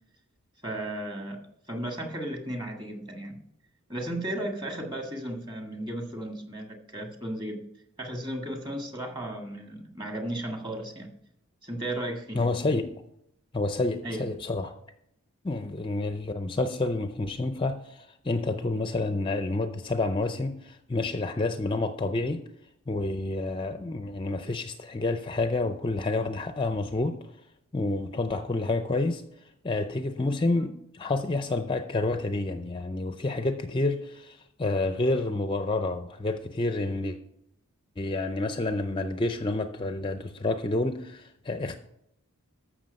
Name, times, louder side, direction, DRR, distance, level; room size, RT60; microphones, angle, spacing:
voice 1, 0.6-3.4 3.9-7.6 8.0-11.1 11.6-12.4 14.0-14.3, right 1 dB, 20° right, 1.8 m, -35 dB
voice 2, 12.3-12.9 13.5-14.7 15.4-22.5 22.9-27.2 27.7-29.2 29.6-37.2 38.0-41.8, left 2 dB, 20° left, 0.5 m, -29 dB
14.0 x 6.3 x 5.3 m
head